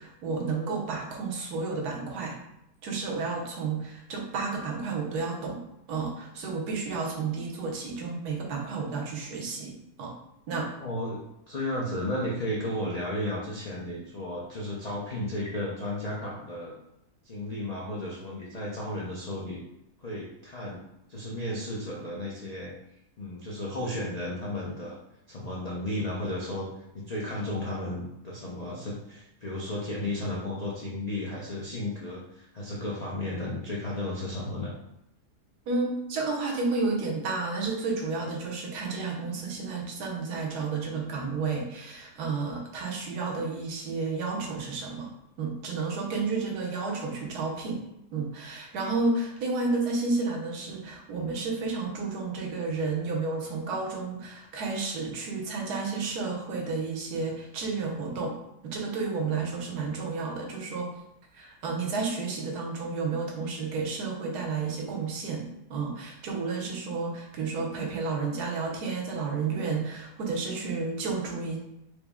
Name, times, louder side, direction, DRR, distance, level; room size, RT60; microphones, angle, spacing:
voice 1, 0.0-2.4 2.8-5.6 5.9-10.2 10.5-10.7 35.7-47.8 48.1-58.4 58.6-60.9 61.3-71.6, right 4 dB, 85° right, 0 dB, 1.3 m, -31 dB
voice 2, 10.8-16.7 17.2-19.6 20.0-20.8 21.1-22.7 23.2-25.0 25.3-26.7 26.9-34.7, left 1 dB, 70° left, -5 dB, 0.3 m, -34 dB
4.5 x 2.0 x 3.5 m, 0.84 s
omnidirectional pair, 1.6 m